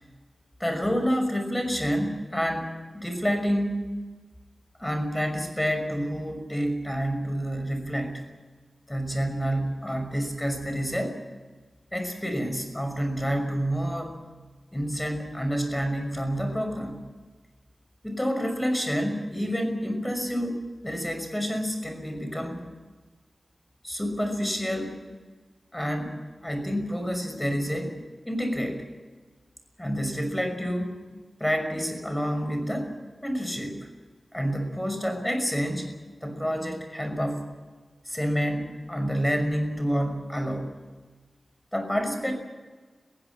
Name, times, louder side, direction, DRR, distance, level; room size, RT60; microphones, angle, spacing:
voice 1, 0.6-3.8 4.8-8.3 8.9-11.2 11.9-14.2 14.7-17.0 18.0-22.6 23.8-25.0 25.7-27.9 28.3-28.8 29.8-31.0 31.4-32.9 33.2-33.9 34.3-35.9 36.2-37.5 38.1-40.7 41.7-42.3, equal, 10° left, 6 dB, 5.8 m, -28 dB
21.5 x 16.0 x 9.9 m, 1.4 s
wide cardioid pair, 75°, 0 cm